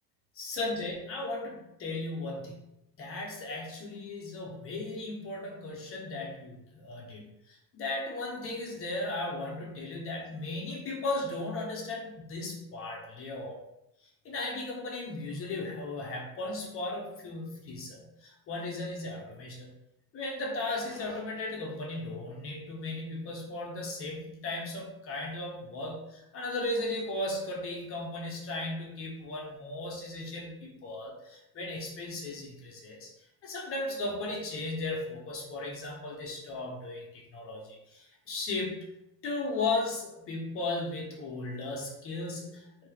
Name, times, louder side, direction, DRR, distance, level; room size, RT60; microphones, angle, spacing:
voice 1, 0.4-2.6 3.0-13.6 14.2-19.7 20.1-33.1 33.4-38.9 39.2-42.9, left 2 dB, 35° left, -1 dB, 0.8 m, -36 dB
3.7 x 2.8 x 4.7 m, 0.86 s
cardioid pair, 180°, 41 cm